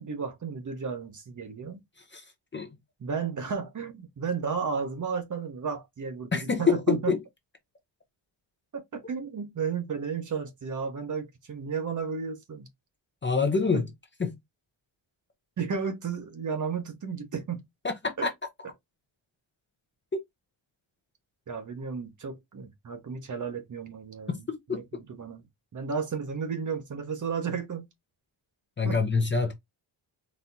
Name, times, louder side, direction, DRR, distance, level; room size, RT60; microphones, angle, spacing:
voice 1, 0.0-1.8 3.0-7.1 8.7-12.7 13.7-13.8 15.6-17.6 18.2-18.3 21.5-25.4 25.7-27.9 28.8-29.0, right 6 dB, 40° right, 0.9 m, -33 dB
voice 2, 6.3-7.2 13.2-13.9 14.2-14.4 17.8-18.3 24.5-24.6 28.8-29.5, left 5 dB, 25° left, 0.6 m, -26 dB
4.2 x 3.3 x 2.7 m
wide cardioid pair, 170°, 48 cm